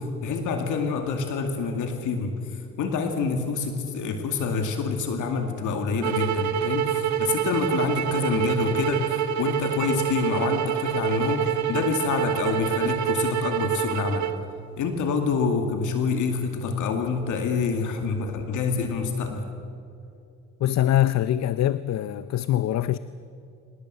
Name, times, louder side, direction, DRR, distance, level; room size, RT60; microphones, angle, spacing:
voice 1, 0.0-14.3 14.8-19.5, left 5 dB, 80° left, 2.2 m, -27 dB
sound 1, 6.0-14.4, right 10 dB, 70° right, 1.4 m, -26 dB
voice 2, 20.6-23.0, left 12 dB, 60° left, 0.7 m, -23 dB
25.0 x 18.5 x 7.9 m
cardioid pair, 90°, 30 cm